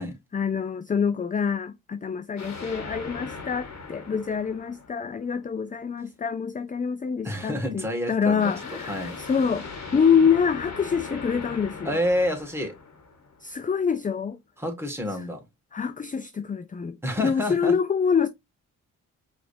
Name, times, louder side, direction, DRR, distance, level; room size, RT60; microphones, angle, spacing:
voice 1, 0.3-9.7 9.9-12.0 13.4-14.4 15.7-18.3, left 6 dB, 25° left, 0.5 m, -26 dB
sound 1, 2.4-5.5 8.4-13.6, left 4 dB, 55° left, 1.7 m, -39 dB
voice 2, 7.2-8.5 8.9-9.2 11.8-12.8 14.6-15.4 17.0-17.7, left 1 dB, 5° right, 2.1 m, -28 dB
4.8 x 3.3 x 2.7 m
supercardioid pair, 50°, 33 cm